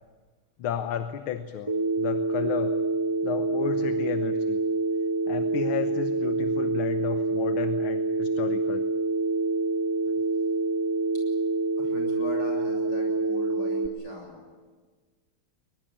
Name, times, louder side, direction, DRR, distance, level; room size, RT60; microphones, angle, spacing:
voice 1, 0.6-1.7 2.0-2.8 3.2-4.6 5.3-8.9, left 8 dB, 80° left, 8 dB, 1.8 m, -32 dB
Telephone, 1.7-13.9, right 3 dB, 15° right, 1.3 m, -26 dB
voice 2, 11.8-14.4, left 2 dB, 55° left, 1 dB, 8.0 m, -41 dB
22.5 x 22.0 x 8.8 m, 1.4 s
omnidirectional pair, 2.3 m